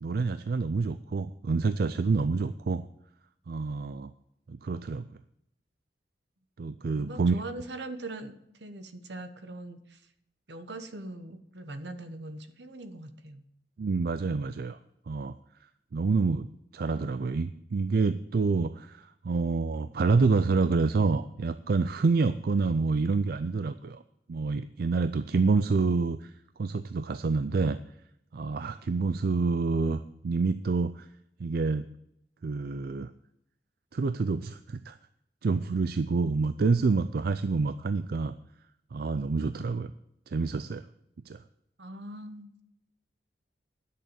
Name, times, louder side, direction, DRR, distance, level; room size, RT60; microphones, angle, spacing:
voice 1, 0.0-2.9 3.5-4.1 4.5-5.0 6.6-7.4 13.8-14.8 15.1-15.4 15.9-24.0 24.3-26.3 26.6-27.8 28.3-31.1 31.4-31.8 32.4-33.1 33.9-35.0 35.4-38.3 38.9-39.9 40.3-40.9 41.3-41.4, right 4 dB, 55° right, 13 dB, 0.4 m, -27 dB
voice 2, 6.9-10.0 10.5-13.4 41.8-42.6, right 2 dB, 75° right, 9 dB, 1.2 m, -41 dB
11.0 x 6.7 x 7.4 m, 0.78 s
head